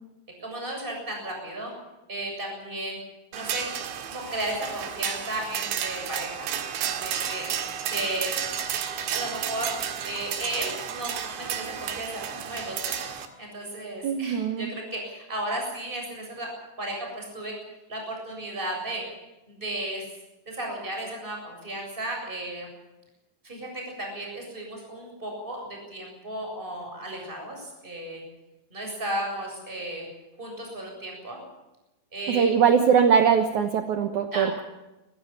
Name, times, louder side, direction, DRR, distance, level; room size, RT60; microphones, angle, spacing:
voice 1, 0.4-1.7 2.1-3.0 3.3-3.7 4.1-6.5 6.8-7.5 7.9-8.3 9.1-9.7 10.0-13.0 13.4-16.5 16.8-17.6 17.9-19.0 19.5-20.1 20.5-22.7 23.4-28.2 28.7-30.1 30.4-31.4 32.1-32.5 34.3-34.6, right 1 dB, 10° right, 1 dB, 7.4 m, -34 dB
sound 1, 3.3-13.3, right 9 dB, 85° right, 4.1 m, -32 dB
voice 2, 14.0-14.7 32.3-34.6, right 7 dB, 70° right, 6 dB, 1.8 m, -21 dB
23.5 x 15.5 x 8.9 m, 1.0 s
omnidirectional pair, 5.1 m